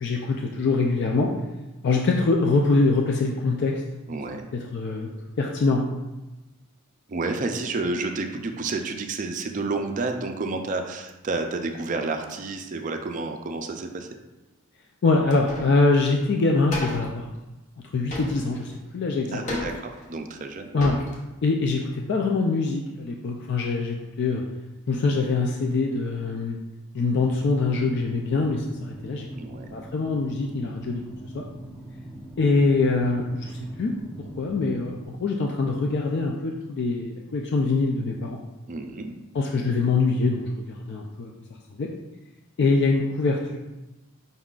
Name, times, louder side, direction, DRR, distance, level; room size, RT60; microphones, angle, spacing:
voice 1, 0.0-1.3 1.8-3.8 4.5-5.1 5.4-5.9 15.0-17.3 17.9-19.4 20.7-21.0 21.4-24.4 24.9-26.6 26.9-29.3 29.7-31.0 31.3-31.4 32.4-33.5 33.8-33.9 34.4-38.4 39.3-41.3 41.8-41.9 42.6-43.6, left 3 dB, 50° left, 0 dB, 0.3 m, -24 dB
voice 2, 4.1-4.5 7.1-14.1 19.3-20.8 29.3-29.8 38.7-39.1, right 3 dB, 35° right, 5 dB, 0.4 m, -30 dB
sound 1, 15.3-15.8 16.1-16.2 16.7-17.2 18.1-18.8 19.5-20.1 20.5-20.6 20.8-21.2, left 1 dB, 35° left, 0.8 m, -34 dB
sound 2, 27.2-35.1, right 1 dB, 5° right, 0.9 m, -42 dB
5.3 x 3.7 x 2.4 m, 1.0 s
head